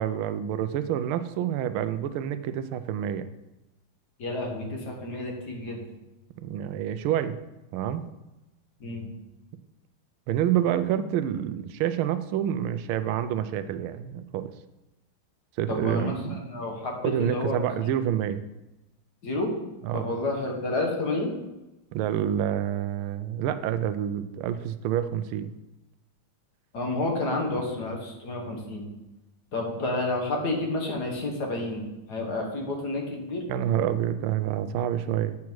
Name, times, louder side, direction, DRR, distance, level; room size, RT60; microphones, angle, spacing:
voice 1, 0.0-3.3 6.4-7.4 7.7-8.0 10.3-14.5 15.6-16.4 17.0-18.4 19.8-20.1 21.9-25.5 33.5-35.4, right 10 dB, 85° right, 11 dB, 1.4 m, -28 dB
voice 2, 4.2-5.8 8.8-9.1 15.7-17.9 19.2-19.5 19.9-21.3 26.7-28.9 29.5-33.4, left 2 dB, 55° left, 0 dB, 1.9 m, -30 dB
8.3 x 6.0 x 4.6 m, 1.0 s
omnidirectional pair, 2.3 m